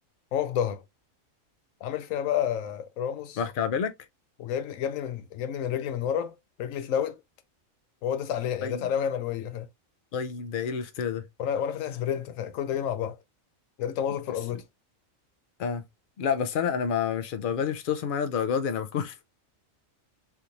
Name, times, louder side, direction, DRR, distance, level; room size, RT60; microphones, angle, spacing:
voice 1, 0.3-0.8 1.8-3.4 4.4-7.2 8.0-9.7 11.4-13.2 13.8-14.6, left 9 dB, 80° left, 1.0 m, -30 dB
voice 2, 3.4-3.9 8.6-8.9 10.1-11.2 15.6-15.8 16.2-19.2, left 7 dB, 60° left, 0.6 m, -28 dB
3.4 x 2.6 x 2.8 m
omnidirectional pair, 1.4 m